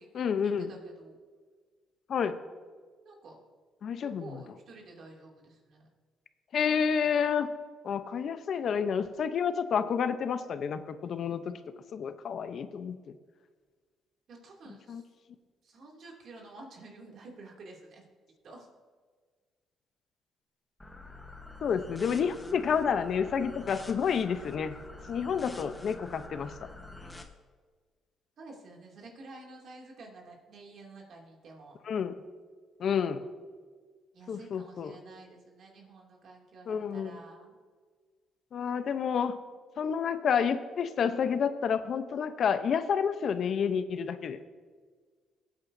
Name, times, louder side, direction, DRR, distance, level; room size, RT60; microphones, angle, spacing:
voice 1, 0.1-0.7 2.1-2.4 3.8-4.4 6.5-7.5 7.8-11.6 11.9-13.2 14.9-15.0 21.6-24.7 25.1-26.5 31.8-32.2 32.8-33.2 34.3-34.9 36.7-37.2 38.5-39.4 39.8-44.4, left 7 dB, 60° left, 11 dB, 0.8 m, -29 dB
voice 2, 0.7-1.1 3.0-3.4 4.2-5.9 14.3-15.0 15.6-18.0 18.4-18.7 28.4-31.8 34.1-37.5, right 2 dB, 65° right, 0 dB, 2.6 m, -50 dB
sound 1, 20.8-27.2, left 2 dB, 10° left, 1.2 m, -47 dB
20.0 x 8.8 x 2.7 m, 1.5 s
cardioid pair, 90°, 0 cm